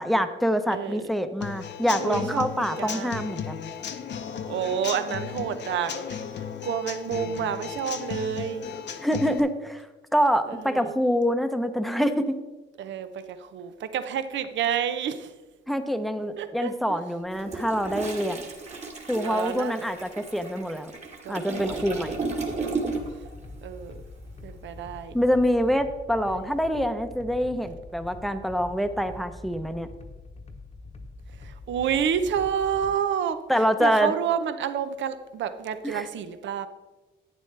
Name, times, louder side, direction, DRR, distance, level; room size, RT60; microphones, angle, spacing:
voice 1, 0.0-3.7 9.0-9.9 10.1-12.4 15.7-18.4 19.1-20.9 21.3-22.2 25.1-29.9 33.5-34.1 35.8-36.1, equal, ahead, 8 dB, 0.7 m, -25 dB
voice 2, 0.7-1.1 2.0-2.5 2.8-3.3 4.4-6.2 6.6-8.6 10.5-10.9 12.8-15.3 16.4-17.0 19.2-19.7 21.2-22.1 23.6-24.0 24.4-25.2 31.4-33.4 33.8-36.7, right 8 dB, 70° right, 11 dB, 0.7 m, -29 dB
Human voice / Acoustic guitar / Drum, 1.4-9.4, left 8 dB, 65° left, 0.9 m, -35 dB
Toilet flush, 17.3-23.3 23.6-23.8, right 3 dB, 35° right, 1.8 m, -34 dB
sound 1, 21.7-32.9, left 3 dB, 35° left, 1.0 m, -44 dB
11.0 x 9.1 x 3.3 m, 1.2 s
cardioid pair, 90°, 20 cm